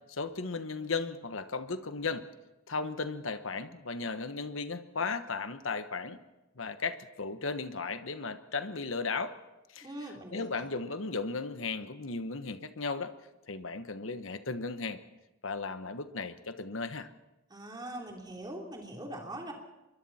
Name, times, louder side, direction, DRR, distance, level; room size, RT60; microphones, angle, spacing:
voice 1, 0.1-2.2 2.7-6.2 6.6-9.3 9.7-9.9 10.3-13.1 13.5-15.0 15.4-17.1, left 4 dB, 75° left, 10 dB, 1.2 m, -35 dB
voice 2, 9.8-10.6 17.5-19.5, right 1 dB, 20° right, 0 dB, 3.6 m, -42 dB
26.5 x 23.0 x 4.3 m, 1.0 s
head